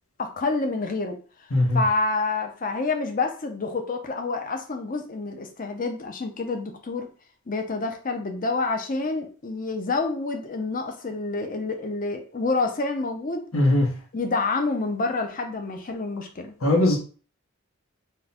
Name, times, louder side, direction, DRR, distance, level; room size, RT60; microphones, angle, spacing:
voice 1, 0.2-1.2 1.7-7.1 7.5-13.4 14.1-16.5, left 3 dB, 40° left, 4 dB, 0.6 m, -28 dB
voice 2, 13.5-13.9 16.6-17.0, left 1 dB, 70° left, 0 dB, 1.1 m, -19 dB
3.7 x 2.2 x 4.2 m, 0.38 s
head